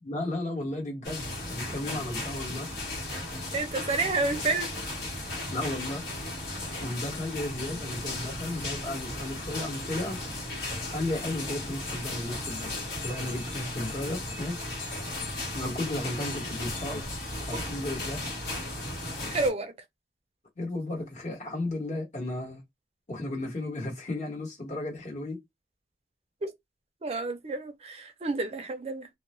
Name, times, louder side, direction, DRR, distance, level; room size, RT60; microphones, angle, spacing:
voice 1, 0.0-2.7 5.5-6.0 6.5-10.2 10.9-12.7 13.0-14.7 15.5-17.1 17.4-18.2 20.6-22.6 23.1-25.4, left 1 dB, 40° left, 1.1 m, -34 dB
sound 1, 1.0-19.5, left 2 dB, 60° left, 1.2 m, -35 dB
voice 2, 3.5-4.7 6.7-6.8 17.5-17.6 19.3-19.7 26.4-26.5 27.0-29.1, right 3 dB, 35° right, 0.5 m, -30 dB
2.3 x 2.0 x 3.0 m
head